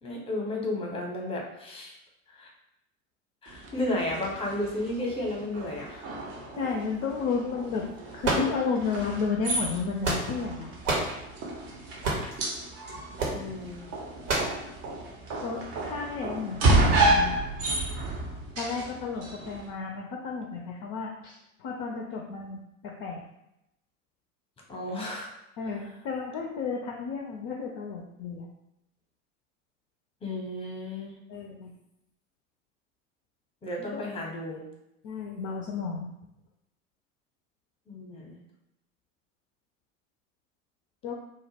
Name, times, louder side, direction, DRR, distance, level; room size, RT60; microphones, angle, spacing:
voice 1, 0.0-1.9 2.3-2.5 3.4-6.1 13.3-13.9 24.7-25.3 30.2-31.2 33.6-34.6 37.9-38.4, left 1 dB, 15° left, -1 dB, 0.7 m, -33 dB
sound 1, 3.5-19.7, right 2 dB, 35° right, 0.6 m, -31 dB
voice 2, 6.6-7.8 8.1-10.7 15.4-17.4 18.6-23.2 25.6-28.5 31.3-31.7 33.8-34.0 35.0-36.1 41.0-41.1, left 5 dB, 40° left, 0 dB, 0.4 m, -32 dB
sound 2, 8.2-9.0 9.7-10.5 10.8-11.2 12.0-12.4 13.2-13.4 14.3-14.6, right 2 dB, 65° right, 0.8 m, -28 dB
2.2 x 2.0 x 3.2 m, 0.85 s
figure-of-eight pair, 75°, 39 cm